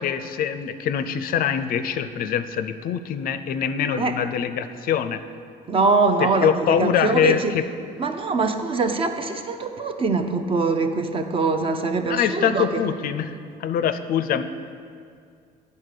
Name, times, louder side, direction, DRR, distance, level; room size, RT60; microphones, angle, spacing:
voice 1, 0.0-5.2 6.2-7.6 12.1-13.3 13.6-14.4, left 8 dB, 60° left, 11 dB, 0.4 m, -24 dB
voice 2, 5.7-7.6 8.0-12.7, right 3 dB, 30° right, 7 dB, 0.6 m, -23 dB
8.8 x 4.2 x 6.6 m, 2.4 s
cardioid pair, 110°, 17 cm